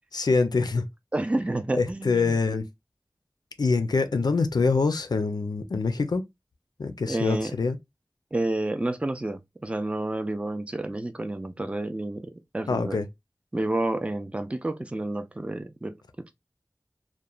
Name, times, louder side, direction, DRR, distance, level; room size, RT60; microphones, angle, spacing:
voice 1, 0.1-0.9 1.7-2.7 3.6-6.3 6.8-7.8 12.7-13.1, left 4 dB, 90° left, 0.4 m, -25 dB
voice 2, 1.1-2.4 7.1-7.5 8.3-13.0 13.5-16.4, right 2 dB, 20° right, 0.4 m, -30 dB
2.9 x 2.1 x 2.3 m
wide cardioid pair, 55°, 7 cm